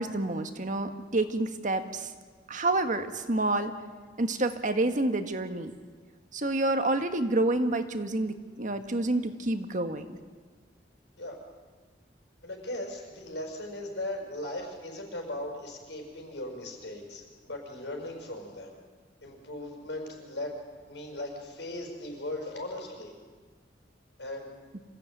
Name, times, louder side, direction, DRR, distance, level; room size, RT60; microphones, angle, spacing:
voice 1, 0.0-2.1 2.5-3.7 4.2-5.7 6.3-10.0 24.7-24.8, right 2 dB, 45° right, 7 dB, 1.5 m, -28 dB
voice 2, 12.4-18.8 19.2-20.6 20.8-23.1 24.2-24.5, left 1 dB, 85° left, 2 dB, 6.2 m, -38 dB
26.0 x 15.5 x 9.3 m, 1.5 s
head